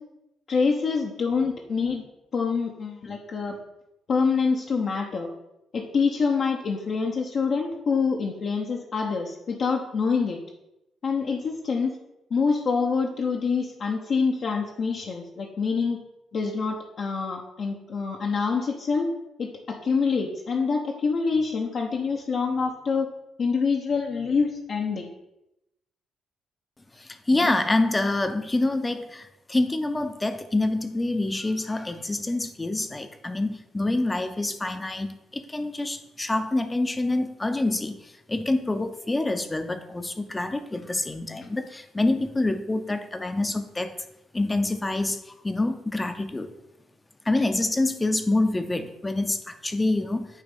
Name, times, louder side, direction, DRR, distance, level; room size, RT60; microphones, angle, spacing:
voice 1, 0.5-2.0 2.3-3.6 4.1-5.3 5.7-10.4 11.0-12.0 12.3-16.0 16.3-19.1 19.4-23.1 23.4-25.1 27.3-27.5, left 5 dB, 55° left, 0 dB, 0.8 m, -26 dB
voice 2, 27.0-43.9 44.3-46.5 47.3-50.3, left 2 dB, 15° left, 9 dB, 0.7 m, -26 dB
9.1 x 3.2 x 5.3 m, 0.89 s
cardioid pair, 90°, 0 cm